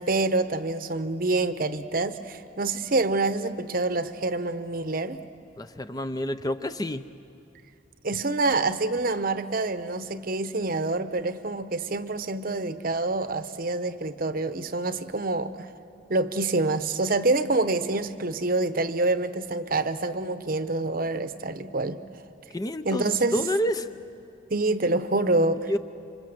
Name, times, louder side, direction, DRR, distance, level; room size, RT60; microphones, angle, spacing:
voice 1, 0.0-5.2 8.0-15.7 16.1-22.0 22.8-23.4 24.5-25.7, right 2 dB, 45° right, 12 dB, 0.9 m, -26 dB
voice 2, 5.6-7.0 22.5-23.9 25.7-25.8, equal, 20° left, 10 dB, 0.5 m, -28 dB
27.0 x 26.0 x 7.9 m, 2.8 s
head